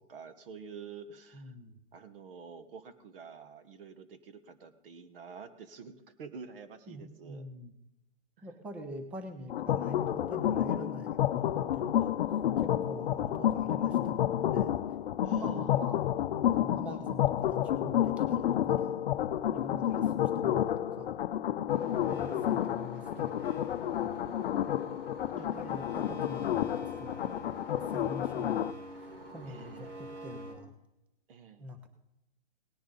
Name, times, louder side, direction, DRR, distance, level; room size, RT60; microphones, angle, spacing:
voice 1, 0.0-1.5 1.9-7.5 8.4-8.5 15.2-15.7 19.2-19.9 25.4-25.5 29.5-29.9 31.3-31.7, right 6 dB, 50° right, 10 dB, 1.4 m, -50 dB
voice 2, 1.3-1.8 6.9-7.7 8.4-12.2 12.6-14.7 15.3-16.1 16.5-19.0 19.5-21.2 21.9-23.5 24.0-24.2 25.3-27.3 27.7-28.7 29.0-30.7 31.6-31.9, equal, 5° right, 7 dB, 0.4 m, -45 dB
sound 1, 9.5-28.7, left 11 dB, 55° left, 0.6 m, -30 dB
sound 2, 21.7-30.6, right 1 dB, 80° right, 5.4 m, -47 dB
18.0 x 10.0 x 3.9 m, 0.90 s
hypercardioid pair, 145°, 35 cm